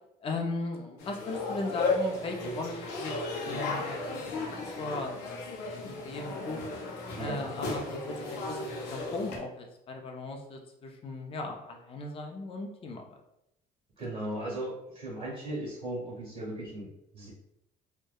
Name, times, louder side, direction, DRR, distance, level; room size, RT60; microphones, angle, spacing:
voice 1, 0.2-4.3 4.8-5.4 5.7-6.6 7.2-13.0, left 2 dB, 35° left, 2 dB, 0.4 m, -37 dB
sound 1, 1.0-9.4, left 3 dB, 85° left, 0.6 m, -35 dB
voice 2, 7.2-7.5 14.0-16.9 17.1-17.3, right 1 dB, 35° right, -5 dB, 1.5 m, -37 dB
2.7 x 2.1 x 2.2 m, 0.83 s
cardioid pair, 110°, 17 cm